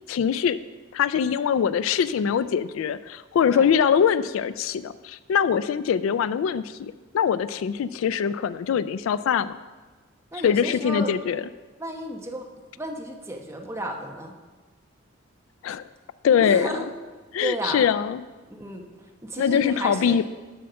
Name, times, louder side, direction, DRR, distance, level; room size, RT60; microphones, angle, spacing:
voice 1, 0.1-0.6 0.9-9.6 10.3-11.4 15.6-15.8 16.2-16.8 17.3-18.2 19.4-20.2, left 7 dB, 75° left, 15 dB, 0.3 m, -23 dB
voice 2, 10.3-11.1 11.8-12.5 12.8-14.4 16.4-16.8 17.4-17.9 18.5-18.9 19.2-20.2, right 1 dB, 15° right, 2 dB, 0.9 m, -33 dB
7.7 x 6.5 x 5.6 m, 1.3 s
head